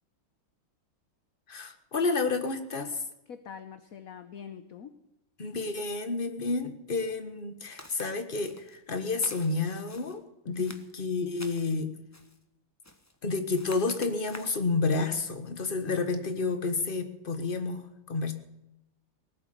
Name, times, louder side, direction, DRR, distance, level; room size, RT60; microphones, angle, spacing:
voice 1, 1.5-3.0 5.4-11.9 13.2-18.3, left 3 dB, 25° left, 8 dB, 1.5 m, -30 dB
voice 2, 3.3-5.0 10.5-10.8, left 7 dB, 55° left, 10 dB, 1.1 m, -44 dB
Walk footsteps, 7.8-8.1 8.4-8.8 9.2-10.2 10.6-11.7 12.1-12.4 12.8-13.2 13.5-14.7 15.1-15.3, left 1 dB, 10° left, 0.7 m, -49 dB
19.0 x 8.2 x 9.4 m, 0.90 s
omnidirectional pair, 2.3 m